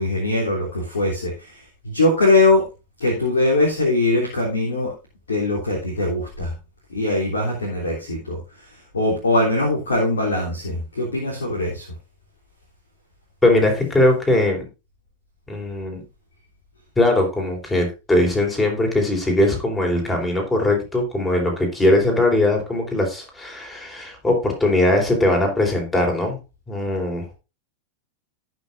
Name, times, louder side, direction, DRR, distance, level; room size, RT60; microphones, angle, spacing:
voice 1, 0.0-2.7 3.0-4.9 5.3-6.5 6.9-8.4 8.9-11.9, left 2 dB, 70° left, -2 dB, 3.2 m, -21 dB
voice 2, 13.4-14.6 15.5-16.0 17.0-26.4 26.7-27.4, left 1 dB, 10° left, 2 dB, 4.3 m, -20 dB
18.0 x 6.3 x 2.6 m, 0.28 s
figure-of-eight pair, 90°, 0 cm